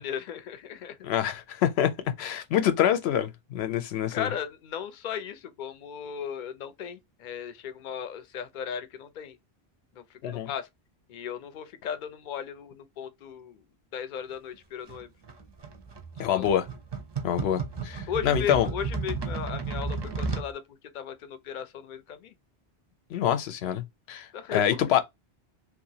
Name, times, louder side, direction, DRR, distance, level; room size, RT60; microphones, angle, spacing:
voice 1, 0.0-1.0 4.1-9.4 9.9-10.7 11.1-13.6 13.9-15.1 16.2-16.5 18.1-22.3 24.3-24.9, left 8 dB, 60° left, 0.6 m, -36 dB
voice 2, 1.0-1.9 2.2-4.3 10.2-10.5 16.2-16.6 17.2-18.7 23.1-25.0, left 10 dB, 90° left, 0.8 m, -26 dB
sound 1, 14.9-20.5, right 4 dB, 35° right, 0.4 m, -34 dB
2.9 x 2.4 x 2.7 m
omnidirectional pair, 1.0 m